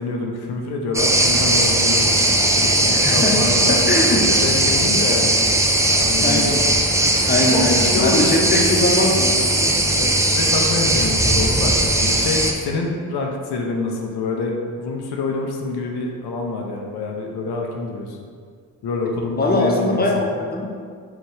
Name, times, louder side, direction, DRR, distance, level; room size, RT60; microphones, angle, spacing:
voice 1, 0.0-5.3 5.9-6.6 7.4-8.6 9.9-18.2 18.8-20.0, left 3 dB, 80° left, 1 dB, 0.5 m, -26 dB
sound 1, 0.9-12.5, right 1 dB, 10° right, 0.4 m, -18 dB
voice 2, 2.9-3.4 3.7-4.2 6.2-6.6 7.3-9.8 19.4-20.7, left 1 dB, 25° left, 0 dB, 0.7 m, -21 dB
4.6 x 2.2 x 3.1 m, 2.1 s
supercardioid pair, 40°, 38 cm